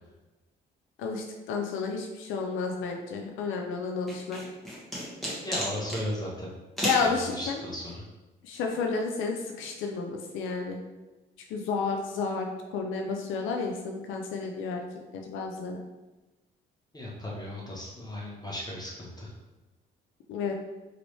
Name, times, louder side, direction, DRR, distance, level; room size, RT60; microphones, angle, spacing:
voice 1, 1.0-4.4 6.8-7.6 8.4-10.8 11.5-14.8 15.1-15.8 20.3-20.5, left 4 dB, 85° left, 2 dB, 0.4 m, -31 dB
sound 1, 4.1-6.0 6.8-7.1, equal, ahead, 1.3 m, -32 dB
voice 2, 5.4-6.5 7.0-8.0 16.9-19.3, left 1 dB, 20° left, -3 dB, 0.8 m, -36 dB
3.0 x 2.9 x 3.1 m, 1.1 s
cardioid pair, 90°, 20 cm